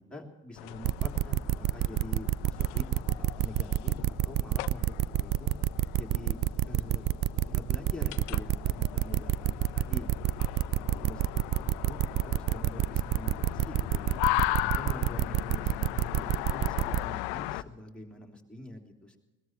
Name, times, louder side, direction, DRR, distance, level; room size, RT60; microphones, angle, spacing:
voice 1, 0.1-3.9 4.2-5.5 6.0-6.4 6.7-7.0 7.5-10.3 10.7-14.2 14.6-15.7 16.0-19.2, left 1 dB, ahead, 0 dB, 3.1 m, -45 dB
sound 1, 0.6-17.6, left 18 dB, 60° left, 0.7 m, -37 dB
sound 2, 0.8-17.0, right 15 dB, 40° right, 0.5 m, -27 dB
21.0 x 19.0 x 3.1 m, 1.2 s
figure-of-eight pair, 55°, 43 cm